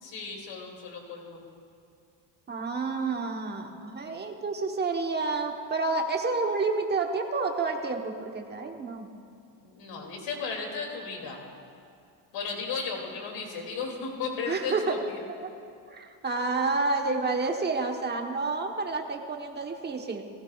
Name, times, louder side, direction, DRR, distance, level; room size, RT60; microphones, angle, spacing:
voice 1, 0.0-1.4 9.6-11.4 12.3-15.2, left 5 dB, 75° left, 0 dB, 2.7 m, -35 dB
voice 2, 2.5-9.1 14.5-15.0 15.9-20.2, right 3 dB, 25° right, 3 dB, 1.1 m, -29 dB
18.0 x 15.5 x 2.4 m, 2.4 s
cardioid pair, 130°, 44 cm